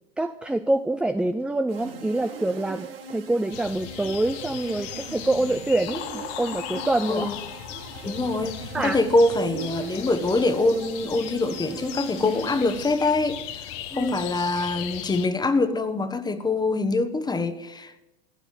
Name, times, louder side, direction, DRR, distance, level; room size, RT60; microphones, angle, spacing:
voice 1, 0.2-7.3 8.7-9.0 13.9-14.1, right 2 dB, 5° right, 0.6 m, -26 dB
sound 1, 1.7-13.5, right 6 dB, 80° right, 2.4 m, -40 dB
sound 2, 3.5-15.3, left 11 dB, 55° left, 1.4 m, -38 dB
voice 2, 8.0-13.4 13.9-18.0, left 2 dB, 15° left, 1.4 m, -24 dB
16.0 x 9.1 x 9.1 m
hypercardioid pair, 90°, 29 cm